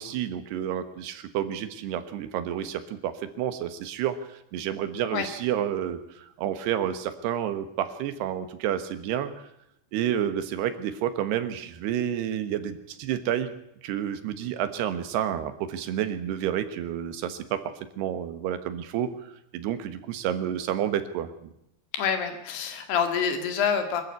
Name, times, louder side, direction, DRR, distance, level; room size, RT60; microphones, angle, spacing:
voice 1, 0.0-9.5 9.9-13.5 13.8-21.5, right 10 dB, 85° right, 10 dB, 3.4 m, -30 dB
voice 2, 21.9-24.0, left 7 dB, 80° left, 7 dB, 4.2 m, -27 dB
24.0 x 13.5 x 8.2 m, 0.81 s
omnidirectional pair, 4.6 m